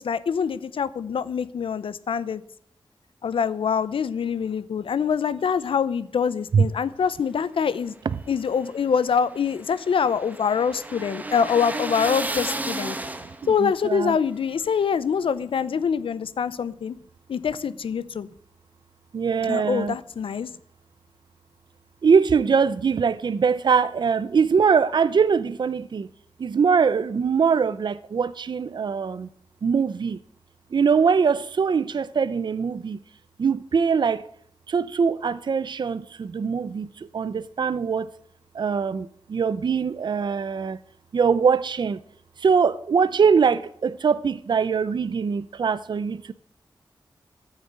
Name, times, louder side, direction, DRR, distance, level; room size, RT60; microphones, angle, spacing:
voice 1, 0.0-2.4 3.2-7.9 8.3-13.0 13.5-17.0 17.3-18.3 19.5-20.5, left 6 dB, 90° left, 0.7 m, -25 dB
sound 1, 8.2-13.6, right 2 dB, 20° right, 1.1 m, -33 dB
voice 2, 13.6-14.2 19.1-19.9 22.0-26.1 26.4-29.3 29.6-30.2 30.7-33.0 33.4-34.2 34.7-36.9 37.1-38.0 38.6-40.8 41.1-42.0 42.4-46.3, right 6 dB, 55° right, 0.5 m, -22 dB
13.0 x 6.5 x 9.2 m
wide cardioid pair, 120°, 9 cm